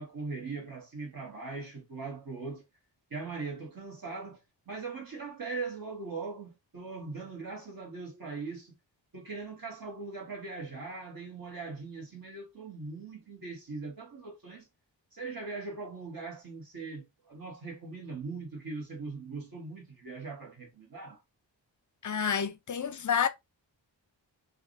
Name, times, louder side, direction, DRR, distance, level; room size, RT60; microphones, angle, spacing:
voice 1, 0.0-2.6 3.1-8.8 9.1-14.7 15.1-21.2, right 4 dB, 50° right, 1.3 m, -40 dB
voice 2, 22.0-23.3, left 7 dB, 45° left, 0.5 m, -29 dB
3.4 x 2.4 x 2.5 m
wide cardioid pair, 95°, 45 cm